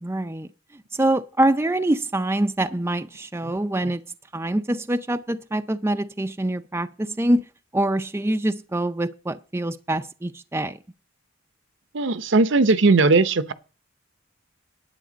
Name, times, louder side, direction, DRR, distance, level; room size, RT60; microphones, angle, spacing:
voice 1, 0.0-4.0 4.3-7.5 7.7-10.8, right 1 dB, 15° right, 0.5 m, -25 dB
voice 2, 11.9-13.5, right 3 dB, 65° right, 0.8 m, -18 dB
10.0 x 8.9 x 5.1 m
head